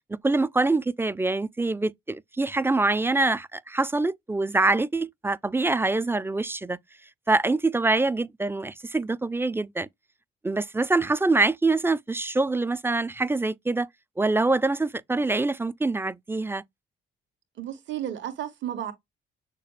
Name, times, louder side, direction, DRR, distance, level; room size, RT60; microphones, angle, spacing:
voice 1, 0.1-6.8 7.3-9.9 10.4-13.9 14.2-16.6, right 2 dB, 10° right, 0.4 m, -25 dB
voice 2, 17.6-18.9, right 11 dB, 70° right, 2.0 m, -33 dB
6.6 x 2.4 x 3.2 m
cardioid pair, 90°, 20 cm